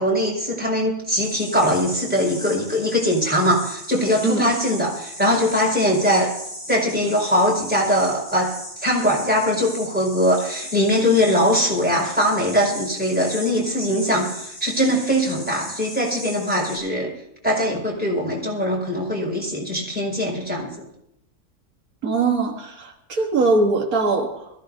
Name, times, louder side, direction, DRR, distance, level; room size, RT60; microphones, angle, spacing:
voice 1, 0.0-6.3 6.7-8.5 8.8-17.1 17.4-20.9, equal, 5° right, -4 dB, 5.2 m, -21 dB
sound 1, 1.1-16.8, equal, 75° left, 6.6 m, -37 dB
voice 2, 22.0-24.5, right 3 dB, 85° right, 1 dB, 2.0 m, -21 dB
22.5 x 15.0 x 2.7 m, 0.81 s
omnidirectional pair, 1.5 m